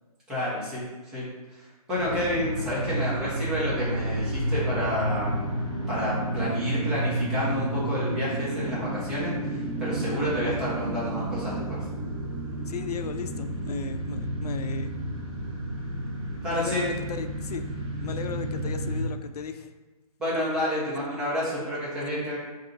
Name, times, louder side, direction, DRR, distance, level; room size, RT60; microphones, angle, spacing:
voice 1, 0.3-0.8 1.1-1.2 1.5-5.5 5.9-11.8 16.4-16.9 20.2-22.4, left 1 dB, 5° right, -9 dB, 0.4 m, -30 dB
sound 1, 1.9-19.0, right 1 dB, 45° right, 1.1 m, -31 dB
voice 2, 12.7-14.9 16.5-17.7 17.9-19.7 21.5-21.8 22.1-22.2, left 6 dB, 85° left, 8 dB, 0.4 m, -35 dB
3.7 x 2.6 x 3.8 m, 1.2 s
hypercardioid pair, 165°, 19 cm